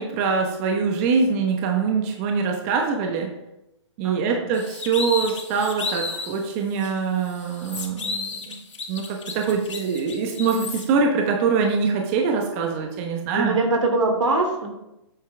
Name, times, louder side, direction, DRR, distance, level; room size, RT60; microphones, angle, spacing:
voice 1, 0.0-3.3 4.0-8.6 8.9-13.6, right 5 dB, 30° right, 2 dB, 1.2 m, -24 dB
voice 2, 4.0-4.5 13.3-14.7, right 2 dB, 80° right, 3 dB, 2.8 m, -23 dB
sound 1, 4.5-6.4 6.8-6.9 7.3-10.8, left 4 dB, 85° left, 2.5 m, -32 dB
10.0 x 8.5 x 3.5 m, 0.89 s
hypercardioid pair, 155°, 15 cm